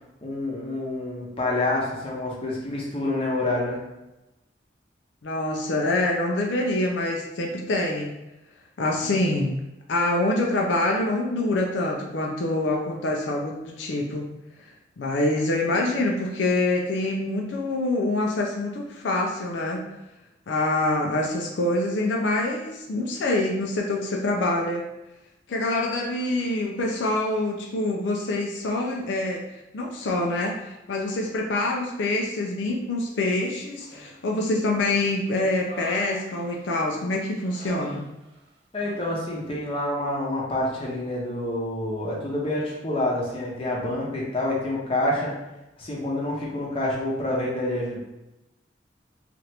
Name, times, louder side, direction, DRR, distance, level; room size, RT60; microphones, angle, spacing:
voice 1, 0.2-3.8 38.7-45.3 45.8-48.0, left 1 dB, 30° left, -4 dB, 0.7 m, -27 dB
voice 2, 5.2-8.2 8.8-9.5 9.9-14.3 15.0-19.8 20.5-24.8 25.5-29.4 29.7-38.0, left 2 dB, 85° left, 0 dB, 0.4 m, -25 dB
Human voice, 33.8-34.4 34.8-37.0 37.4-38.5 38.7-39.0, right 2 dB, 30° right, 0.7 m, -43 dB
2.9 x 2.5 x 3.2 m, 0.97 s
head